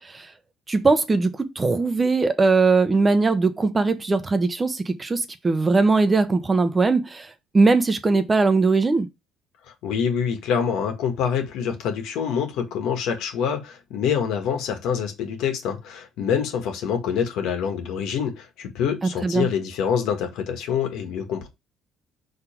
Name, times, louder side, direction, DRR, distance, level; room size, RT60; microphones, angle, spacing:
voice 1, 0.7-7.3 7.5-9.1 19.2-19.5, right 3 dB, 25° right, 0.9 m, -20 dB
voice 2, 9.8-21.5, left 7 dB, 80° left, 1.8 m, -26 dB
5.5 x 3.9 x 4.4 m
cardioid pair, 105°, 0 cm